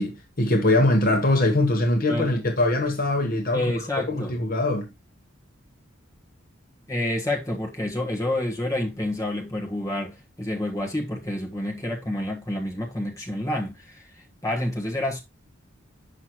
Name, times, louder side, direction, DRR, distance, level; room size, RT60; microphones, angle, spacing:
voice 1, 0.0-3.7 4.1-4.9, left 1 dB, 45° left, 1.2 m, -22 dB
voice 2, 2.1-2.5 3.5-4.3 6.9-14.0 14.4-15.2, left 1 dB, 15° left, 1.5 m, -28 dB
8.3 x 5.9 x 3.1 m
head